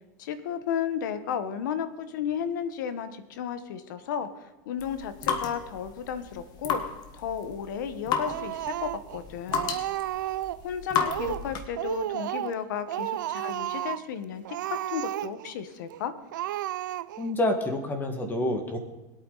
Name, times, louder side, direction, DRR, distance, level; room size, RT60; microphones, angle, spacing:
voice 1, 0.2-6.8 7.1-9.7 10.6-16.1, left 8 dB, 80° left, 12 dB, 1.3 m, -33 dB
sound 1, 4.8-11.8, left 6 dB, 40° left, 1.6 m, -33 dB
Speech, 8.3-9.2 9.5-10.6 11.0-11.5 11.8-12.6 12.9-14.1 14.5-15.5 15.9-16.0 16.3-17.3, right 14 dB, 90° right, 0.4 m, -32 dB
voice 2, 17.2-18.8, left 1 dB, 20° left, 6 dB, 1.9 m, -28 dB
21.0 x 8.8 x 4.1 m, 1.1 s
supercardioid pair, 130°, 10 cm